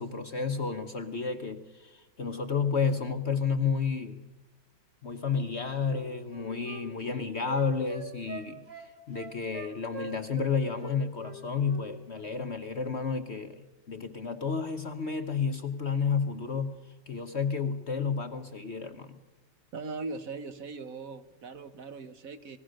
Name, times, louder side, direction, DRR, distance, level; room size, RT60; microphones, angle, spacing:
voice 1, 0.0-4.2 5.0-19.2, left 5 dB, 45° left, 8 dB, 1.0 m, -31 dB
Wind instrument woodwind instrument, 5.8-10.5 10.8-11.8 12.1-12.3, right 5 dB, 75° right, 4.2 m, -43 dB
voice 2, 19.7-22.6, right 4 dB, 55° right, 10 dB, 1.2 m, -40 dB
27.0 x 19.5 x 6.4 m, 1.1 s
omnidirectional pair, 2.0 m